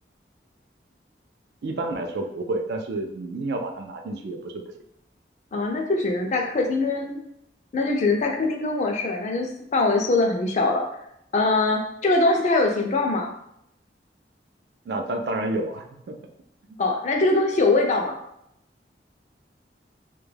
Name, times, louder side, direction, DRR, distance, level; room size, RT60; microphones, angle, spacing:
voice 1, 1.6-4.6 14.9-16.2, right 2 dB, 65° right, 4 dB, 0.3 m, -29 dB
voice 2, 5.5-7.2 7.7-10.8 11.3-13.3 16.8-18.2, left 2 dB, 40° left, 2 dB, 0.4 m, -22 dB
2.2 x 2.1 x 3.2 m, 0.77 s
head